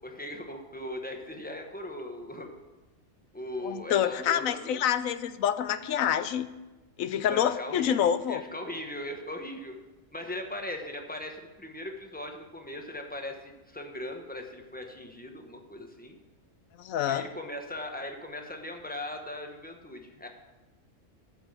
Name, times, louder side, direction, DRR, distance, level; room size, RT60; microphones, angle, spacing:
voice 1, 0.0-2.5 3.3-4.8 7.3-9.8 10.1-16.1 17.1-20.3, left 1 dB, 5° left, 3 dB, 1.1 m, -39 dB
voice 2, 3.6-6.5 7.0-8.4 16.8-17.3, left 9 dB, 85° left, 13 dB, 1.1 m, -27 dB
13.0 x 5.5 x 7.3 m, 1.1 s
omnidirectional pair, 1.4 m